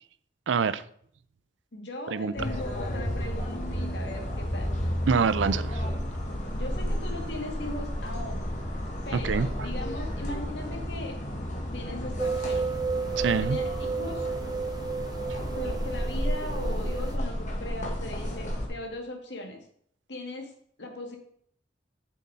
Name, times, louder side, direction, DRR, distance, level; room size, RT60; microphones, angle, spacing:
voice 1, 0.5-0.8 2.1-2.3 5.1-5.8 9.1-9.7 13.2-13.6, right 5 dB, 80° right, 0.5 m, -26 dB
voice 2, 1.7-4.7 6.5-8.5 9.1-11.1 11.7-12.6 13.4-14.3 15.5-19.7 20.1-20.5 20.8-21.2, left 1 dB, 65° left, 2.1 m, -39 dB
sound 1, 2.3-18.7, equal, 40° left, 1.7 m, -32 dB
sound 2, 12.2-17.2, right 5 dB, 20° right, 0.6 m, -32 dB
7.1 x 6.4 x 5.6 m
head